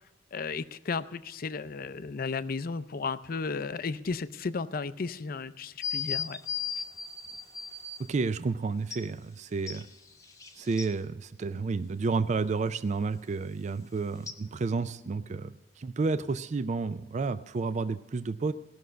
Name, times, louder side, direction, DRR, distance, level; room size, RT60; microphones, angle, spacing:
voice 1, 0.3-6.4, left 4 dB, 55° left, 14 dB, 0.5 m, -34 dB
sound 1, 5.8-8.0 8.9-9.0 9.7-10.9 14.3-14.4, left 6 dB, 20° left, 0.9 m, -36 dB
voice 2, 8.0-9.9 10.6-18.5, right 4 dB, 40° right, 12 dB, 0.4 m, -31 dB
17.5 x 6.3 x 6.7 m, 1.1 s
head